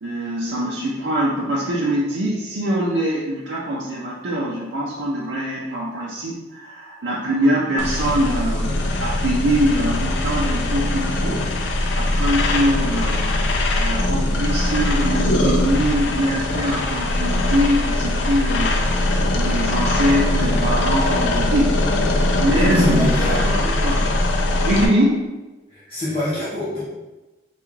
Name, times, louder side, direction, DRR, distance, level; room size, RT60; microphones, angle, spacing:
voice 1, 0.0-8.7 9.0-11.5 12.0-13.3 13.8-18.8 19.3-24.0 24.6-25.2 25.9-26.0, equal, 75° right, -6 dB, 0.5 m, -23 dB
sound 1, 7.8-24.9, left 1 dB, 75° left, 0.4 m, -21 dB
voice 2, 22.5-23.4 25.7-26.8, left 1 dB, 30° left, -9 dB, 0.7 m, -27 dB
3.4 x 2.4 x 3.1 m, 1.1 s
head